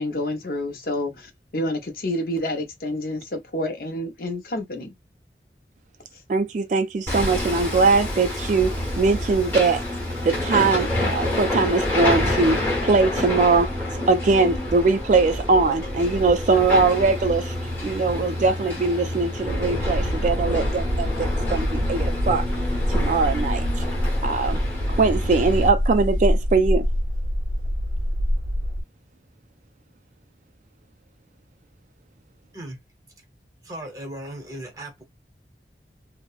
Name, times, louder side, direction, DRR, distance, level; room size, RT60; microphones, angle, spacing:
voice 1, 0.0-4.9, left 1 dB, 55° left, 0.7 m, -29 dB
voice 2, 6.3-9.8 10.2-13.7 14.1-17.5 17.8-22.4 22.9-23.8 24.2-24.6 24.9-26.9, right 4 dB, 45° right, 0.3 m, -21 dB
Hammer, 7.1-25.7, left 1 dB, 10° left, 1.0 m, -28 dB
sound 1, 19.5-28.8, equal, 90° right, 0.8 m, -25 dB
voice 3, 33.6-35.0, right 1 dB, 20° right, 0.8 m, -37 dB
2.8 x 2.0 x 2.3 m
head